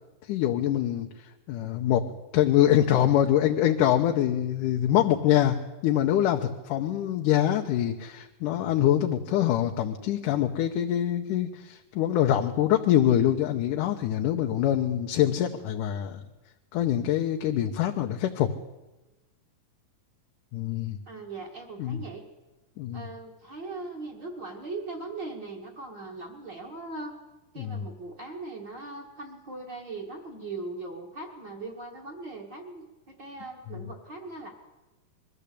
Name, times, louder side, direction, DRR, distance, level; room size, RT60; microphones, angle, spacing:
voice 1, 0.3-5.6 5.8-16.2 16.7-18.5 20.5-21.0 21.8-22.0 22.8-23.1 27.6-27.8, left 11 dB, 75° left, 3 dB, 2.4 m, -24 dB
voice 2, 21.1-22.2 22.9-27.1 27.5-34.5, right 3 dB, 40° right, 2 dB, 2.3 m, -39 dB
22.0 x 14.0 x 8.5 m, 1.1 s
omnidirectional pair, 3.8 m